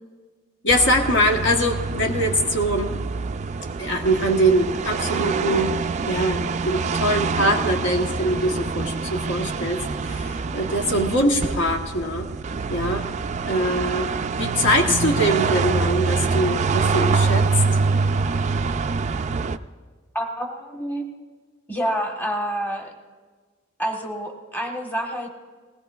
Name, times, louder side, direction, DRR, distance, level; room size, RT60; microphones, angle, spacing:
voice 1, 0.6-3.0 3.8-5.8 6.0-12.3 12.7-13.1 13.4-14.1 14.4-17.5, equal, 60° left, 2 dB, 1.2 m, -23 dB
sound 1, 0.7-19.6, right 4 dB, 35° right, 0.4 m, -25 dB
voice 2, 20.1-21.0 21.7-22.9 23.8-25.3, equal, 10° left, 2 dB, 1.2 m, -28 dB
20.5 x 17.5 x 2.3 m, 1.4 s
head